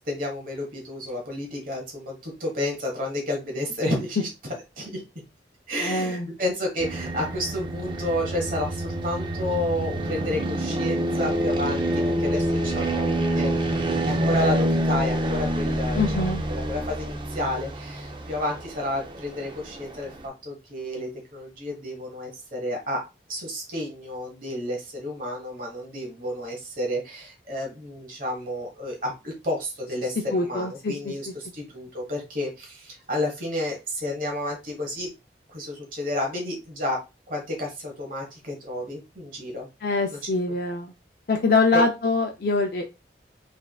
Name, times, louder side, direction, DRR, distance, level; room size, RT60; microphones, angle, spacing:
voice 1, 0.0-5.0 5.7-23.0 23.3-35.1 35.5-37.0 37.3-39.7 40.1-40.2 41.7-41.8, left 1 dB, 50° right, 1 dB, 1.2 m, -31 dB
voice 2, 5.8-6.3 15.9-16.4 30.3-31.3 39.8-40.9 41.3-42.9, left 3 dB, 55° left, 2 dB, 0.4 m, -24 dB
sound 1, 6.8-20.3, right 1 dB, 25° right, 0.4 m, -27 dB
3.5 x 3.4 x 2.3 m, 0.26 s
head